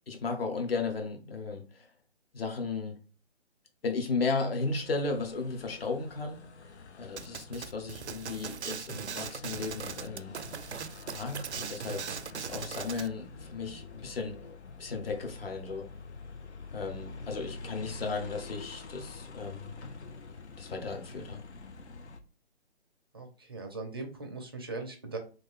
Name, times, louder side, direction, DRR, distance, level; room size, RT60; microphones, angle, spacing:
voice 1, 0.1-1.9 2.3-2.9 3.8-6.4 7.0-10.3 11.0-12.0 12.4-14.4 14.8-15.9 16.7-19.7 20.6-21.4, left 4 dB, 60° left, 4 dB, 1.0 m, -35 dB
sound 1, 4.6-22.2, left 3 dB, 80° left, 0.7 m, -47 dB
sound 2, 7.2-13.1, right 7 dB, 80° right, 0.5 m, -39 dB
voice 2, 23.1-25.2, right 3 dB, 20° right, 3 dB, 0.4 m, -39 dB
3.2 x 2.6 x 3.5 m, 0.35 s
figure-of-eight pair, 140°, 33 cm